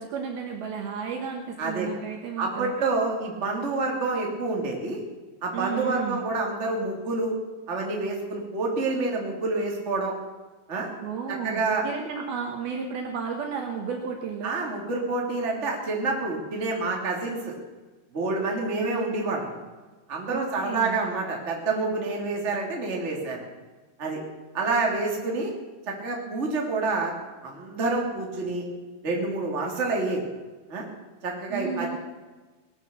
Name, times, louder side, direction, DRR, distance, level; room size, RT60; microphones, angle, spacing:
voice 1, 0.0-2.7 5.5-6.2 11.0-14.6 20.3-21.0 31.5-32.0, right 6 dB, 65° right, 2 dB, 2.8 m, -33 dB
voice 2, 1.6-1.9 2.4-5.0 5.4-7.3 7.7-10.1 10.7-10.9 11.3-11.8 14.4-17.5 18.1-19.6 20.1-23.4 24.0-24.2 24.5-25.5 25.9-27.1 27.4-28.6 29.0-30.2 30.7-30.8 31.2-32.0, right 3 dB, 20° right, -1 dB, 2.2 m, -28 dB
19.5 x 9.9 x 7.0 m, 1.3 s
omnidirectional pair, 5.3 m